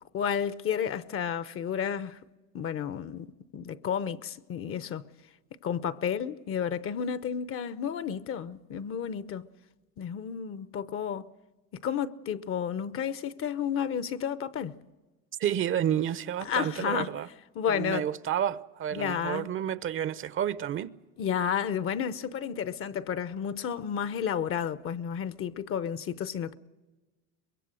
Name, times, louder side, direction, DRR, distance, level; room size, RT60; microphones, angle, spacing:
voice 1, 0.0-2.2 2.5-5.0 5.6-9.5 10.0-11.3 11.7-14.7 16.5-17.1 17.5-18.1 18.9-19.5 21.2-26.5, left 8 dB, 40° left, 0.8 m, -31 dB
voice 2, 15.4-17.3 17.7-21.0, right 10 dB, 35° right, 0.7 m, -30 dB
24.0 x 21.5 x 6.3 m
supercardioid pair, 105°, 35 cm